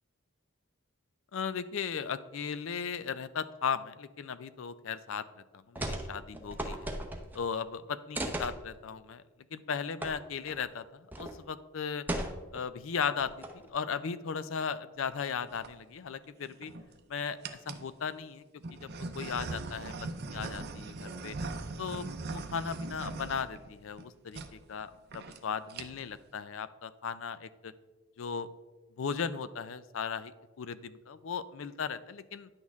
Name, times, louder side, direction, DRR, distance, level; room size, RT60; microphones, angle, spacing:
voice 1, 1.3-5.2 5.7-6.9 7.3-9.2 9.5-12.0 12.5-16.7 17.1-17.4 17.6-18.4 18.7-21.4 21.8-24.4 24.7-27.7 28.2-28.5 29.0-32.5, left 6 dB, 65° left, 14 dB, 0.4 m, -37 dB
sound 1, 5.7-6.1 6.3-7.4 8.1-8.6 10.0-10.1 10.5-10.6 11.1-11.4 12.1-12.6 13.2-13.7, right 1 dB, 10° right, 0.7 m, -36 dB
sound 2, 15.3-15.7 16.4-17.0 17.4-17.9 18.6-24.0 24.3-24.5 24.8-24.9 25.1-25.4 25.7-26.2, right 3 dB, 50° right, 0.6 m, -40 dB
9.7 x 6.3 x 3.6 m, 1.2 s
head